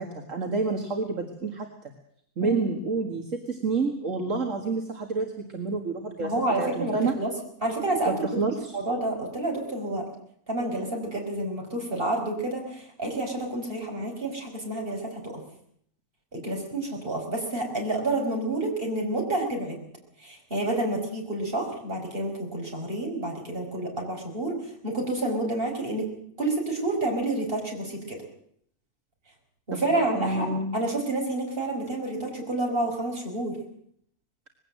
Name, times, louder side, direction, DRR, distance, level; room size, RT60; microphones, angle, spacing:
voice 1, 0.0-1.7 2.4-6.3 6.6-7.1 8.1-8.7 29.7-30.8, right 3 dB, 65° right, 3 dB, 2.3 m, -29 dB
voice 2, 6.2-7.3 7.6-8.1 8.7-10.1 10.5-15.4 16.3-19.8 20.2-26.1 26.4-28.2 29.7-33.6, right 2 dB, 40° right, 1 dB, 5.3 m, -29 dB
20.5 x 17.0 x 7.7 m, 0.68 s
omnidirectional pair, 1.5 m